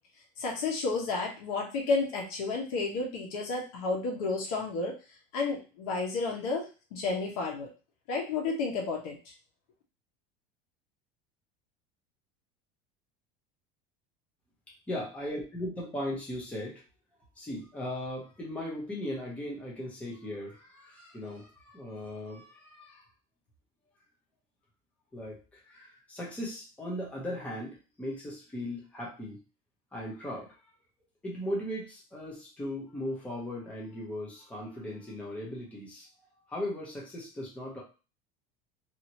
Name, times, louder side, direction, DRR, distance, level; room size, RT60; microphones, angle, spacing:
voice 1, 0.4-4.9 5.3-7.7 8.1-9.2, left 3 dB, 85° left, 0 dB, 1.1 m, -31 dB
voice 2, 14.9-16.8 17.4-23.1 25.1-29.4 29.9-30.5 31.2-36.1 36.5-37.8, left 1 dB, 5° left, -4 dB, 0.8 m, -38 dB
2.9 x 2.7 x 2.9 m, 0.33 s
cardioid pair, 175°, 18 cm